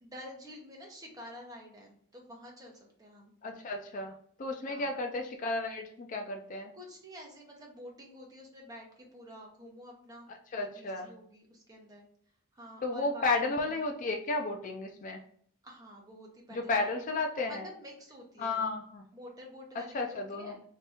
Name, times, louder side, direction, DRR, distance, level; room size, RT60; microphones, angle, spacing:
voice 1, 0.0-3.3 4.7-5.0 6.7-10.3 10.5-12.0 12.5-13.3 13.7-13.8 15.6-17.1 17.5-18.6 19.1-20.6, equal, 15° right, -1 dB, 0.9 m, -49 dB
voice 2, 3.4-4.1 4.4-6.7 10.5-11.1 12.8-15.2 16.5-17.6 18.4-19.0 19.8-20.5, left 3 dB, 35° left, 3 dB, 0.3 m, -33 dB
3.3 x 2.8 x 3.4 m, 0.62 s
head